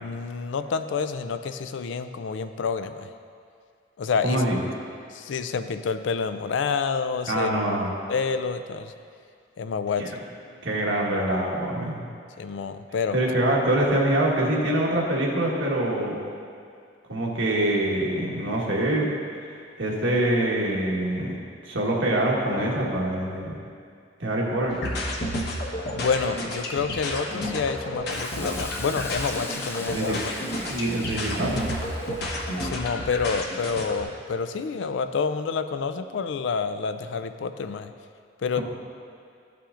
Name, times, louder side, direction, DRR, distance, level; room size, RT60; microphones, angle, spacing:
voice 1, 0.0-3.1 4.0-4.4 5.1-7.5 8.1-8.9 9.6-10.0 12.4-13.2 25.9-30.2 32.6-37.9 38.4-38.6, left 5 dB, 80° left, 10 dB, 0.4 m, -28 dB
voice 2, 4.2-4.6 7.3-7.9 10.0-10.1 10.6-12.0 13.1-16.2 17.1-19.1 19.8-21.4 21.7-23.6 24.2-24.8 29.9-30.2 30.7-31.6 38.5-38.6, right 1 dB, 85° right, -3 dB, 1.4 m, -24 dB
sound 1, 24.7-34.0, left 1 dB, 60° left, 1.2 m, -31 dB
Hiss, 28.1-32.8, left 2 dB, 15° left, 0.5 m, -41 dB
12.5 x 5.8 x 2.5 m, 2.3 s
head